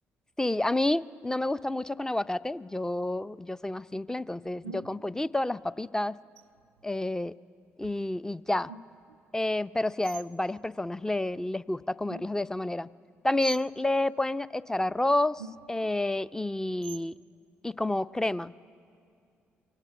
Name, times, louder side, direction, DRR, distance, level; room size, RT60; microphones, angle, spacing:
voice 1, 0.4-6.2 6.8-7.3 7.8-8.7 9.3-12.9 13.2-15.4 15.7-17.1 17.6-18.5, left 1 dB, 10° left, 16 dB, 0.5 m, -29 dB
sound 1, 2.2-2.3 4.6-5.1 6.4-6.9 7.8-8.1 8.6-9.2 10.0-10.3 12.1-12.6 13.4-13.8 14.8-14.9 15.4-16.0 16.8-17.2, right 5 dB, 85° right, 0.4 m, -46 dB
23.5 x 18.0 x 8.6 m, 2.4 s
figure-of-eight pair, 45°, 6 cm